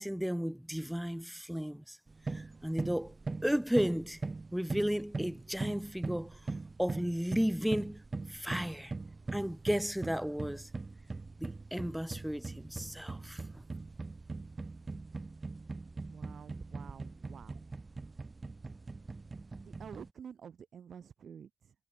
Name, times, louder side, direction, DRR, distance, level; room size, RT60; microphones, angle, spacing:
voice 1, 0.0-2.0 2.3-3.1 3.4-4.2 4.5-6.4 6.8-8.0 8.3-8.9 9.3-10.7 11.4-13.6, equal, ahead, 2.6 m, -34 dB
sound 1, 2.1-20.1, right 3 dB, 20° right, 4.9 m, -41 dB
voice 2, 16.1-17.6 19.6-21.7, right 7 dB, 55° right, 6.6 m, -50 dB
wide cardioid pair, 170°, 0 cm